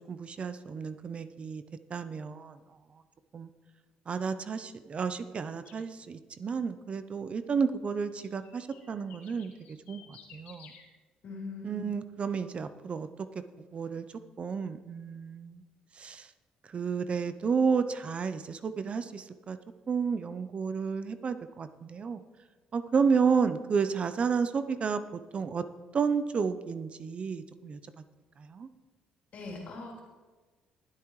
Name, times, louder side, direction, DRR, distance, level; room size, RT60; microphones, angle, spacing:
voice 1, 0.1-1.6 1.9-2.6 3.3-3.5 4.1-10.7 11.6-13.1 13.6-14.0 14.4-15.6 16.0-16.3 16.7-19.6 19.9-22.2 22.7-25.6 25.9-27.8 28.4-28.7, right 5 dB, 45° right, 11 dB, 0.7 m, -31 dB
sound 1, 5.6-5.9 8.1-10.8, left 7 dB, 85° left, 2.2 m, -54 dB
voice 2, 11.2-11.9 29.3-30.0, left 3 dB, 60° left, -2 dB, 3.4 m, -41 dB
19.5 x 8.5 x 3.2 m, 1.3 s
supercardioid pair, 80°, 3 cm